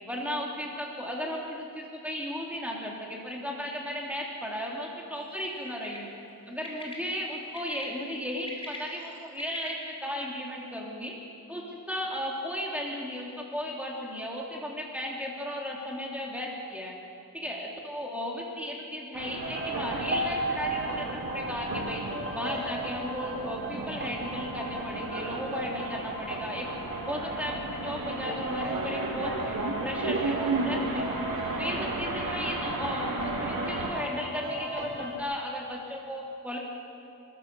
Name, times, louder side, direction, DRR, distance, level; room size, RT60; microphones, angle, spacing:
voice 1, 0.1-6.1 6.5-11.1 11.5-16.9 17.3-22.0 22.3-26.7 27.1-31.2 31.6-36.6, equal, 5° right, -3 dB, 3.1 m, -35 dB
Bird, 5.6-6.0 6.6-6.9 7.5-7.8 8.3-9.7, left 1 dB, 15° left, 4.0 m, -41 dB
sound 1, 19.1-33.9, right 3 dB, 70° right, 2.9 m, -34 dB
sound 2, 19.4-35.2, equal, 35° right, 4.1 m, -36 dB
28.5 x 13.5 x 6.9 m, 2.8 s
wide cardioid pair, 100°, 35 cm